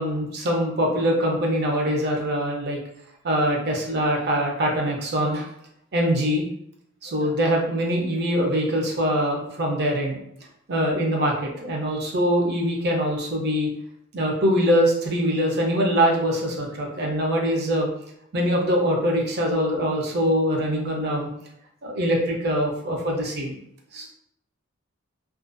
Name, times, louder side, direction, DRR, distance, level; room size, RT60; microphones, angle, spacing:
voice 1, 0.0-2.8 3.2-5.5 5.9-6.4 7.0-10.2 10.7-13.7 14.1-17.9 18.3-21.3 21.8-23.6 23.9-24.1, equal, 55° right, 0 dB, 0.6 m, -23 dB
2.5 x 2.3 x 2.5 m, 0.74 s
head